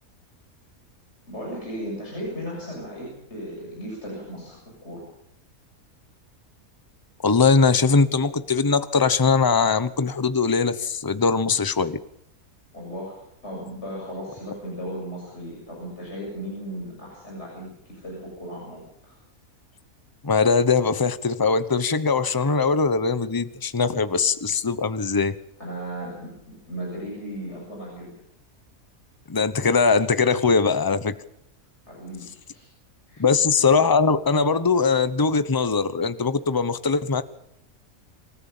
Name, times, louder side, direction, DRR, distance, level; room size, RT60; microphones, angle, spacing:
voice 1, 1.3-5.0 12.7-19.2 25.6-28.1 31.9-32.7 33.1-33.2, equal, 50° left, -2 dB, 7.8 m, -36 dB
voice 2, 7.2-12.0 20.2-25.3 29.3-31.2 33.2-37.2, left 4 dB, 15° left, 13 dB, 0.9 m, -21 dB
27.0 x 14.0 x 7.3 m, 0.78 s
omnidirectional pair, 1.5 m